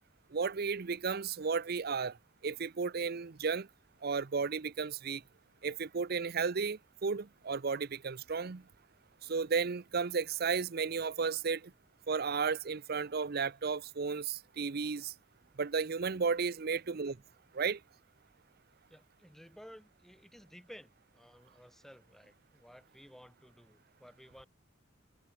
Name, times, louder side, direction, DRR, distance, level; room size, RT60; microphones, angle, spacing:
voice 1, 0.3-2.2 2.4-3.7 4.0-5.2 5.6-8.6 9.2-11.7 12.1-15.1 15.6-17.2 17.5-17.8, right 5 dB, 50° right, 0.6 m, -33 dB
voice 2, 18.9-24.5, equal, ahead, 4.5 m, -55 dB
head